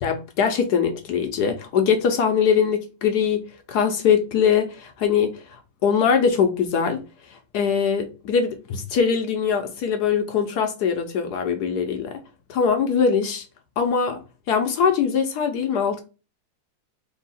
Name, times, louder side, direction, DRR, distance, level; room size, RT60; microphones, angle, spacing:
voice 1, 0.0-5.4 5.8-7.0 7.3-12.2 12.5-13.4 13.8-14.2 14.5-16.0, left 6 dB, 70° left, 1.0 m, -22 dB
3.6 x 2.8 x 4.1 m
omnidirectional pair, 2.3 m